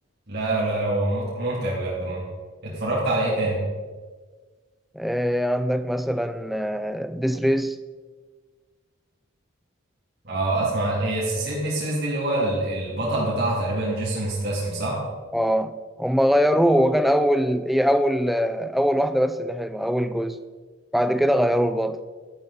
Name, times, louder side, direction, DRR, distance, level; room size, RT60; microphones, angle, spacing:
voice 1, 0.3-2.2 2.6-3.6 10.2-15.0, right 2 dB, 50° right, 3.0 m, -25 dB
voice 2, 4.9-7.8 15.3-20.4 20.9-22.0, equal, ahead, 0.4 m, -22 dB
11.5 x 10.5 x 4.2 m
head